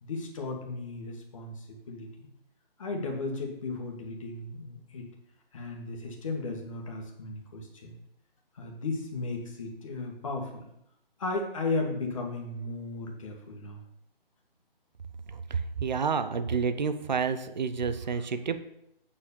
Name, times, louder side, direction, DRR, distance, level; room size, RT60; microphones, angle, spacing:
voice 1, 0.0-2.3 2.8-5.1 5.5-8.0 8.5-10.6 11.2-13.8 18.1-18.2, left 3 dB, 35° left, 1 dB, 1.7 m, -35 dB
voice 2, 15.3-18.6, right 5 dB, 50° right, 11 dB, 0.7 m, -29 dB
8.4 x 4.9 x 7.0 m, 0.81 s
hypercardioid pair, 165°, 30 cm